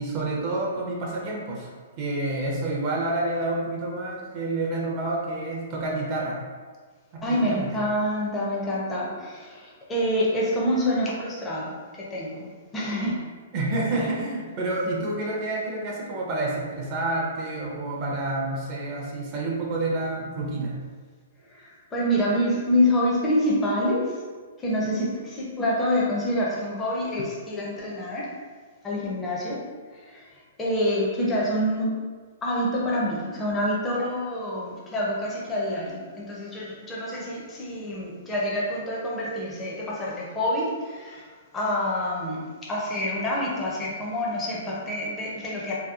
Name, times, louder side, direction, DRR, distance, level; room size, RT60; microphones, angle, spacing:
voice 1, 0.0-6.4 7.1-7.8 13.5-20.8 24.9-25.1, right 2 dB, 35° right, -3 dB, 0.4 m, -29 dB
voice 2, 7.2-13.2 21.5-24.2 24.6-25.1 25.4-28.3 28.8-29.7 29.9-30.3 30.6-31.9 32.4-41.3 41.5-45.7, left 1 dB, 15° left, -6 dB, 0.5 m, -27 dB
2.7 x 2.2 x 2.4 m, 1.5 s
hypercardioid pair, 145°, 0 cm